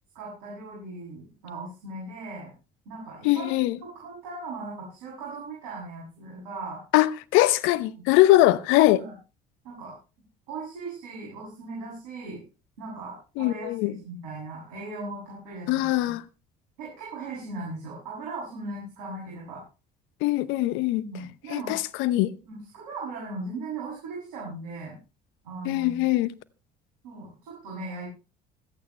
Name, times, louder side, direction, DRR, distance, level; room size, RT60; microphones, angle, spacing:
voice 1, 0.1-2.5 2.9-3.5 3.8-6.8 7.8-8.1 8.9-9.1 9.6-9.9 10.5-12.4 12.8-16.1 16.8-19.6 20.9-21.8 22.4-25.0 25.4-26.0 27.0-28.1, right 3 dB, 90° right, 7.7 m, -38 dB
voice 2, 3.2-3.8 6.9-9.0 13.4-13.9 15.7-16.2 20.2-21.0 21.5-22.3 25.6-26.3, left 16 dB, 75° left, 0.9 m, -22 dB
26.0 x 9.0 x 3.3 m
hypercardioid pair, 65°, 20 cm